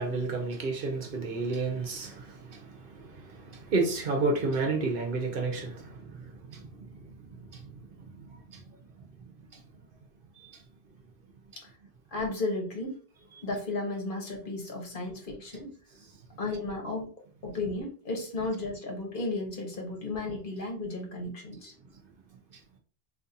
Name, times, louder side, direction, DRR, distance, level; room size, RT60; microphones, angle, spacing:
voice 1, 0.0-6.9 7.3-7.7 8.0-8.6 10.4-10.5, right 3 dB, 60° right, 0.9 m, -32 dB
voice 2, 12.1-13.0 13.4-15.7 16.4-17.1 17.4-21.7, left 2 dB, 55° left, 1.2 m, -34 dB
4.1 x 2.6 x 2.6 m
omnidirectional pair, 1.1 m